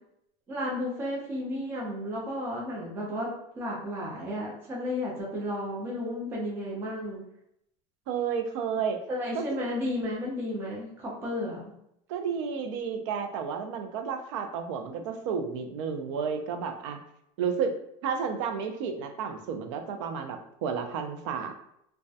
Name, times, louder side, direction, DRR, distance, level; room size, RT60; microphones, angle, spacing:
voice 1, 0.5-7.2 9.1-11.7, left 1 dB, 15° right, -3 dB, 0.3 m, -33 dB
voice 2, 8.1-9.0 9.3-9.6 12.1-17.0 17.4-17.8 18.0-21.5, right 6 dB, 80° right, 6 dB, 0.4 m, -31 dB
2.2 x 2.1 x 2.6 m, 0.75 s
cardioid pair, 180°, 15 cm